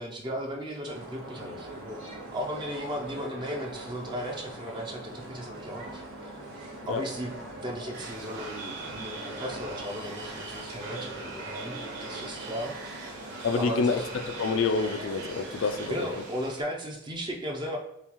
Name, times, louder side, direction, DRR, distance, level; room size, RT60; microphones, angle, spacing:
voice 1, 0.0-2.0 2.3-6.4 6.9-13.2 13.6-14.1 15.9-17.8, equal, 20° right, 1 dB, 0.5 m, -36 dB
sound 1, 0.9-16.2, right 1 dB, 75° right, 1.4 m, -42 dB
sound 2, 7.9-16.6, right 3 dB, 55° right, 1.6 m, -42 dB
voice 2, 13.4-14.0 14.4-16.1, left 4 dB, 65° left, 8 dB, 0.4 m, -27 dB
7.0 x 2.4 x 3.0 m, 0.80 s
head